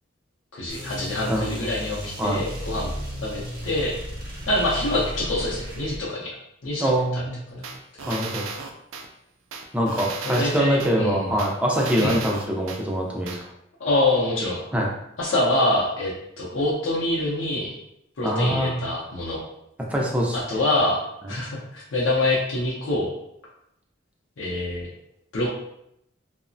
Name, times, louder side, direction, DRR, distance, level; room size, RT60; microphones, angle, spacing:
voice 1, 0.5-2.9 3.2-3.9 4.5-6.3 6.6-7.2 7.5-7.6 8.1-8.2 10.2-11.3 12.0-12.1 13.8-14.6 15.2-17.7 18.2-19.4 20.5-21.0 21.3-23.1 24.4-24.9 25.3-25.5, left 2 dB, 75° left, -6 dB, 0.5 m, -25 dB
sound 1, 0.7-6.0, equal, 50° right, 0.6 m, -34 dB
voice 2, 1.3-1.7 2.2-2.4 6.8-7.4 8.1-8.4 9.7-13.4 14.7-14.9 18.2-18.8 19.9-20.6, equal, 5° right, -2 dB, 0.4 m, -24 dB
sound 2, 7.6-9.1 9.5-10.9 11.4-12.8 13.3-13.4, right 4 dB, 85° right, 0.4 m, -35 dB
2.9 x 2.0 x 2.5 m, 0.79 s
head